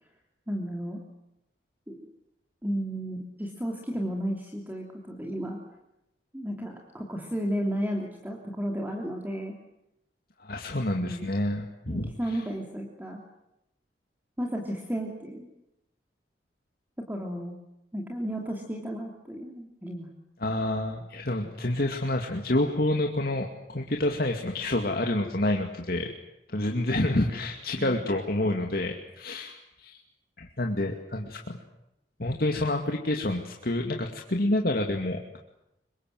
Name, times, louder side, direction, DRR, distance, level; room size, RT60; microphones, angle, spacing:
voice 1, 0.5-1.0 1.9-2.1 2.6-5.6 6.3-9.5 11.0-11.3 11.9-13.2 14.4-15.5 17.1-17.6 17.9-20.1 27.8-28.0, equal, 10° right, 1 dB, 3.1 m, -33 dB
voice 2, 10.4-12.4 20.4-26.1 26.5-30.0 30.4-31.6 32.2-35.4, left 1 dB, 55° left, 2 dB, 2.4 m, -28 dB
27.0 x 24.0 x 7.8 m, 0.87 s
head